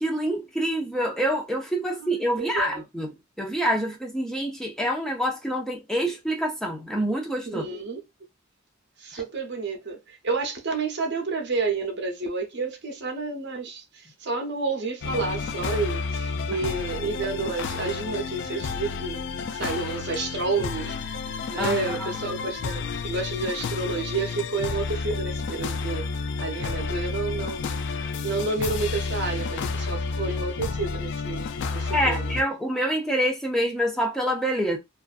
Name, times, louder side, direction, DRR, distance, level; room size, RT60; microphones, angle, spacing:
voice 1, 0.0-3.1 3.4-7.6 9.1-9.2 16.5-16.6 21.6-22.1 31.9-34.8, equal, 5° left, 0.5 m, -26 dB
voice 2, 2.3-2.8 7.4-8.0 9.0-19.2 19.5-21.0 21.5-26.1 26.4-27.6 28.2-31.5 31.7-32.4, right 3 dB, 60° right, 0.7 m, -30 dB
sound 1, 15.0-32.4, left 4 dB, 60° left, 0.3 m, -31 dB
2.5 x 2.4 x 2.3 m
head